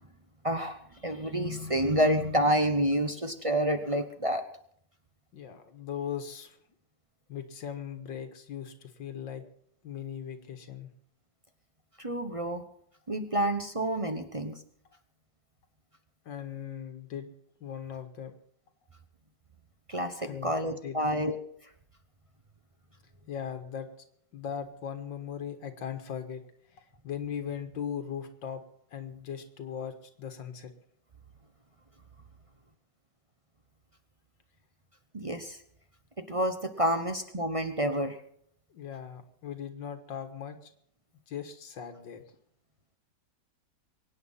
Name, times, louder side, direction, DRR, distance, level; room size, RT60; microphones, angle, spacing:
voice 1, 0.4-4.4 12.0-12.6 13.1-14.6 19.9-21.4 35.1-35.6 36.2-38.2, equal, 25° right, 6 dB, 0.7 m, -28 dB
voice 2, 5.3-6.6 7.3-9.4 9.8-10.9 16.3-17.3 17.6-18.3 20.2-21.0 23.3-23.9 24.3-26.4 26.7-28.6 28.9-30.7 38.7-40.7 41.3-42.2, left 8 dB, 90° left, 6 dB, 2.1 m, -39 dB
23.0 x 9.4 x 5.6 m, 0.67 s
omnidirectional pair, 1.9 m